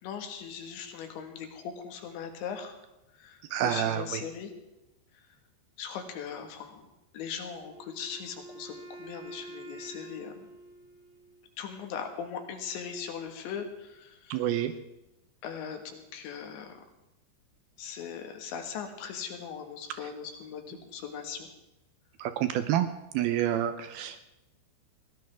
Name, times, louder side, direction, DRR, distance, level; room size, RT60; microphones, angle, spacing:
voice 1, 0.0-2.7 3.2-4.5 5.8-6.9 7.1-10.5 11.6-14.5 15.4-16.7 17.8-21.5, left 7 dB, 75° left, 5 dB, 4.0 m, -39 dB
voice 2, 3.5-4.2 14.3-14.7 22.2-22.9 23.1-24.2, right 11 dB, 85° right, 10 dB, 2.2 m, -28 dB
Wind instrument woodwind instrument, 7.5-11.5, right 2 dB, 65° right, 4.3 m, -47 dB
21.5 x 17.5 x 3.6 m, 0.94 s
omnidirectional pair, 5.2 m